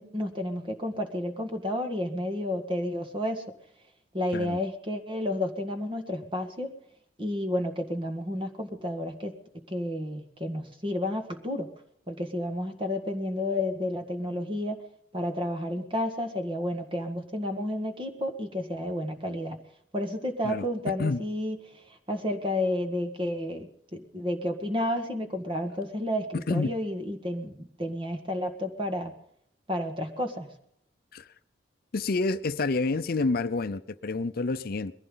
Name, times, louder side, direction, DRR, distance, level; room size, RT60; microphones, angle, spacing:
voice 1, 0.0-3.4 4.1-6.7 7.2-11.7 12.1-14.8 15.1-19.6 19.9-29.1 29.7-30.5, left 1 dB, 30° right, 1.8 m, -31 dB
voice 2, 26.3-26.7 31.1-31.3 31.9-34.9, left 3 dB, 55° left, 0.6 m, -28 dB
22.0 x 15.0 x 3.9 m
head